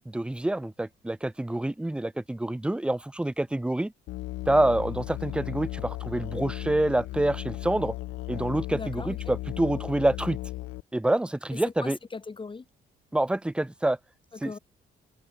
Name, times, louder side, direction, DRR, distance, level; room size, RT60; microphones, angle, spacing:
voice 1, 0.0-3.9 4.5-7.9 8.3-10.4 10.9-12.0 13.1-14.0 14.4-14.6, right 1 dB, 5° right, 0.4 m, -27 dB
Musical instrument, 4.1-10.8, left 18 dB, 90° left, 0.6 m, -36 dB
voice 2, 8.7-9.2 11.5-12.6 14.4-14.6, left 4 dB, 25° left, 1.3 m, -38 dB
open air
cardioid pair, 90°, 20 cm